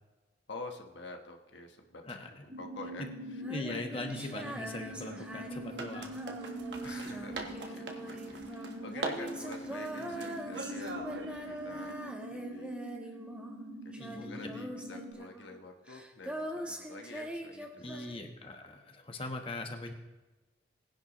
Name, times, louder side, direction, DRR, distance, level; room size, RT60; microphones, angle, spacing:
voice 1, 0.5-4.1 4.4-4.5 6.8-12.7 13.0-13.2 13.8-18.2, left 2 dB, 75° left, 3 dB, 1.2 m, -48 dB
sound 1, 2.5-15.1, equal, 30° right, 2.3 m, -44 dB
Female singing, 3.3-13.7 13.9-18.4, right 1 dB, 5° right, 1.1 m, -43 dB
voice 2, 3.5-6.2 14.0-14.5 17.8-19.9, left 2 dB, 30° left, 4 dB, 1.1 m, -41 dB
sound 2, 4.1-11.9, right 3 dB, 70° right, 1.3 m, -44 dB
20.0 x 10.5 x 3.0 m, 1.2 s
head